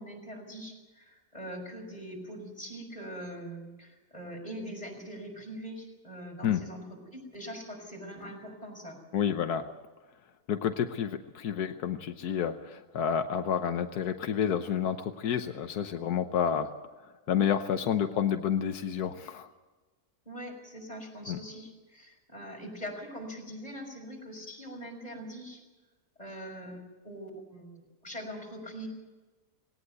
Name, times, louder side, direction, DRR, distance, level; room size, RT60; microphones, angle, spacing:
voice 1, 0.0-6.8 7.1-9.0 20.3-25.6 26.2-28.9, equal, 25° left, 0 dB, 5.7 m, -42 dB
voice 2, 9.1-9.7 10.5-16.7 17.3-19.5 21.3-21.4, left 8 dB, 85° left, 7 dB, 1.5 m, -29 dB
19.0 x 18.0 x 8.0 m, 1.2 s
omnidirectional pair, 1.6 m